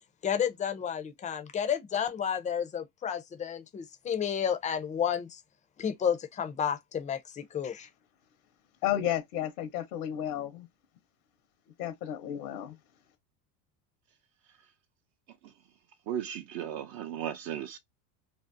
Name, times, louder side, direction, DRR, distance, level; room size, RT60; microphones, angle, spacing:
voice 1, 0.2-5.4 5.8-7.9, left 8 dB, 20° left, 0.4 m, -31 dB
voice 2, 8.8-10.7 11.8-12.7, left 11 dB, 80° left, 0.8 m, -32 dB
voice 3, 16.1-17.8, right 10 dB, 55° right, 0.5 m, -35 dB
2.5 x 2.0 x 2.5 m
hypercardioid pair, 95°, 45 cm